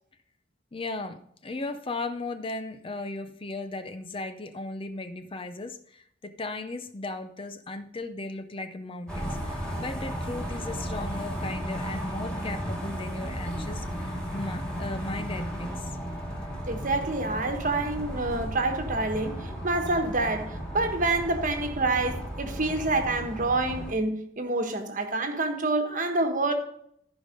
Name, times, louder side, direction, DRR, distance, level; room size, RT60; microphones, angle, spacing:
voice 1, 0.7-15.9, left 2 dB, 25° left, 0.5 m, -36 dB
sound 1, 9.1-23.9, equal, 5° left, 2.1 m, -34 dB
voice 2, 16.7-26.5, right 2 dB, 40° right, 1.3 m, -27 dB
14.5 x 5.2 x 5.1 m
head